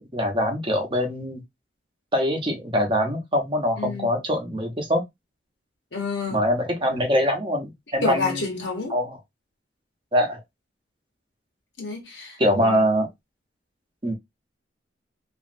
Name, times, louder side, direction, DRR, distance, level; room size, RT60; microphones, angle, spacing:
voice 1, 0.1-1.4 2.1-5.0 6.3-8.4 8.9-9.2 10.1-10.4 12.4-13.1 14.0-14.1, equal, 25° right, 0.8 m, -23 dB
voice 2, 3.8-4.2 5.9-6.4 8.0-9.0 11.8-12.8, left 3 dB, 75° left, 1.0 m, -29 dB
2.9 x 2.5 x 2.5 m
head